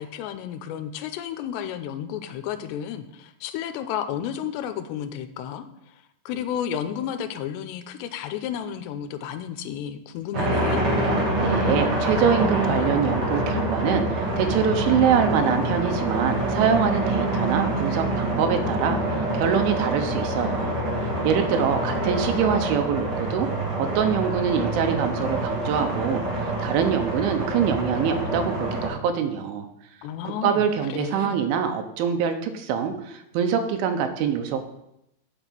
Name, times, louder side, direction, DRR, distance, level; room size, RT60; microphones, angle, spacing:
voice 1, 0.0-5.7 6.3-10.8 30.0-30.6 30.9-31.4, left 9 dB, 80° left, 9 dB, 2.8 m, -32 dB
sound 1, 10.3-28.9, right 1 dB, 35° right, 2.9 m, -26 dB
voice 2, 11.4-20.7 21.2-23.5 23.8-29.7 30.2-34.6, right 7 dB, 85° right, 6 dB, 3.4 m, -24 dB
9.0 x 6.1 x 7.5 m, 0.82 s
omnidirectional pair, 5.3 m